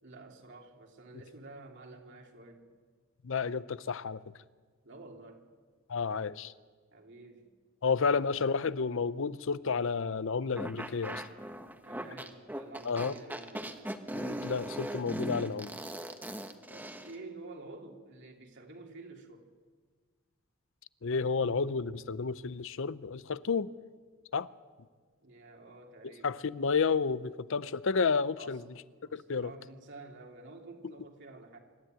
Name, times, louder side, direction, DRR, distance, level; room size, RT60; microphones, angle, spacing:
voice 1, 0.0-2.7 4.8-5.5 6.9-7.5 11.8-13.8 16.7-19.5 25.2-26.4 28.4-28.6 29.0-31.6, right 2 dB, 60° right, 3.0 m, -50 dB
voice 2, 3.2-4.2 5.9-6.5 7.8-11.2 12.8-13.2 14.1-15.7 21.0-23.7 24.3-24.5 26.2-28.6 29.1-29.5, left 5 dB, 65° left, 0.6 m, -31 dB
sound 1, 10.6-17.1, right 1 dB, 10° right, 1.3 m, -39 dB
26.0 x 13.0 x 9.0 m
head